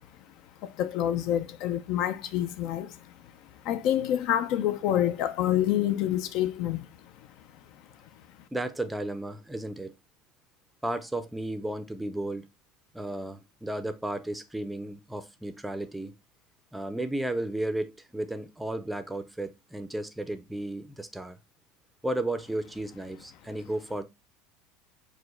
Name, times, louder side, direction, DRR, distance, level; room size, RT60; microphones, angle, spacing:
voice 1, 0.6-3.0 3.6-6.9, left 11 dB, 55° left, 0.4 m, -27 dB
voice 2, 8.5-9.9 10.8-12.5 12.9-16.1 16.7-21.4 22.0-24.0, right 1 dB, 5° right, 0.5 m, -33 dB
4.8 x 2.1 x 3.7 m
supercardioid pair, 140°, 0 cm